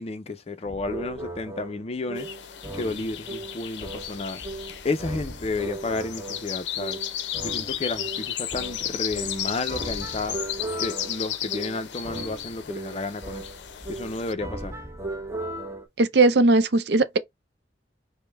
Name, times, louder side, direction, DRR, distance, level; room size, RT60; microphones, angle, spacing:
voice 1, 0.0-2.5 2.7-4.4 4.8-7.0 7.4-10.4 10.8-13.5 13.9-14.7, left 3 dB, 35° left, 0.4 m, -32 dB
sound 1, 0.6-15.9, right 2 dB, 15° right, 0.8 m, -37 dB
sound 2, 2.2-14.3, left 11 dB, 85° left, 0.5 m, -34 dB
voice 2, 16.0-17.2, right 2 dB, 70° right, 0.5 m, -19 dB
5.0 x 2.1 x 3.3 m
head